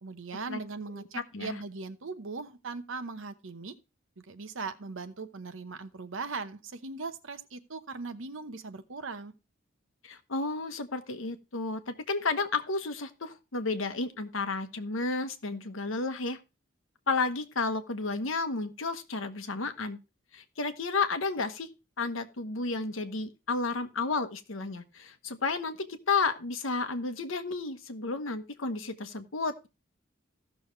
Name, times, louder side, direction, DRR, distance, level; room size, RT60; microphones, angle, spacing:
voice 1, 0.0-3.7 4.2-9.3, right 4 dB, 70° right, 0.9 m, -39 dB
voice 2, 10.0-16.4 17.1-20.0 20.3-21.7 22.0-29.7, left 3 dB, 75° left, 1.1 m, -32 dB
15.5 x 6.3 x 3.2 m
head